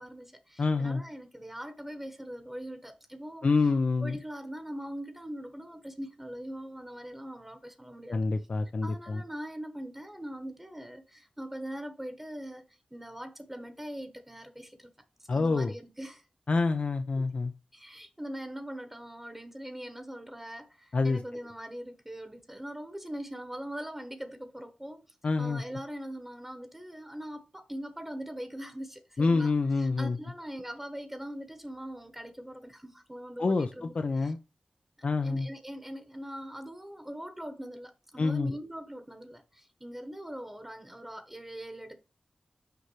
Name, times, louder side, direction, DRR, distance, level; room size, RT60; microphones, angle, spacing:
voice 1, 0.0-3.5 4.0-8.2 8.8-14.9 15.3-16.2 17.2-17.3 17.7-25.0 25.4-33.9 34.2-34.3 35.2-42.0, equal, 10° right, 1.1 m, -42 dB
voice 2, 0.6-1.0 3.4-4.2 8.1-9.2 15.3-15.7 16.5-17.5 20.9-21.2 25.2-25.8 29.2-30.2 33.4-34.4 35.0-35.5 38.2-38.5, left 3 dB, 60° left, 0.6 m, -27 dB
6.9 x 4.9 x 3.1 m
cardioid pair, 55°, 2 cm